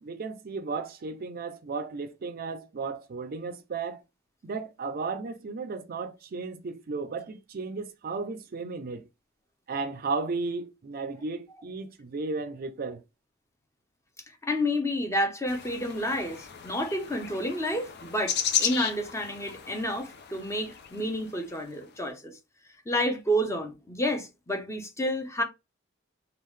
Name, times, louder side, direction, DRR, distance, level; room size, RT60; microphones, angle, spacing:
voice 1, 0.0-4.0 4.4-9.1 9.7-13.0, right 4 dB, 50° right, 0.4 m, -34 dB
voice 2, 14.4-22.3 22.9-25.4, equal, 15° left, 0.7 m, -30 dB
sound 1, 15.5-21.7, left 8 dB, 60° left, 0.5 m, -35 dB
3.6 x 2.4 x 3.2 m
head